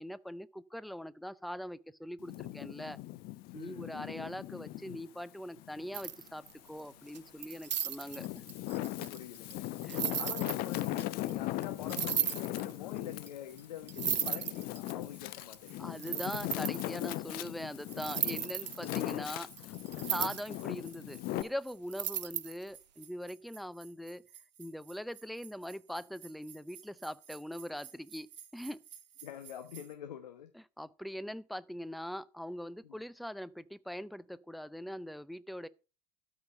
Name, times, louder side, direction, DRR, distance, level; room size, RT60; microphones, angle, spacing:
voice 1, 0.0-3.0 3.5-8.4 9.0-9.1 9.8-10.0 15.8-19.7 20.1-24.2 24.6-28.3 28.5-28.8 30.5-35.7, equal, ahead, 0.5 m, -42 dB
Wind, 2.2-5.0 5.6-6.8 7.5-21.4, left 16 dB, 45° left, 0.8 m, -39 dB
voice 2, 3.5-3.9 9.1-9.8 10.2-15.8 18.9-19.4 29.2-30.5 32.8-33.0, left 10 dB, 70° left, 1.2 m, -46 dB
sound 1, 5.9-6.7 7.2-11.0 11.3-11.4 11.6-11.7 11.9-12.7 13.3-13.4 13.6-13.7 13.9-14.9 15.5-15.6 16.0-17.1 17.9-20.6 20.9-21.0 21.9-22.7, right 9 dB, 80° right, 0.5 m, -35 dB
sound 2, 11.8-29.9, right 9 dB, 35° right, 1.9 m, -58 dB
12.5 x 4.9 x 6.7 m
figure-of-eight pair, 80°, 21 cm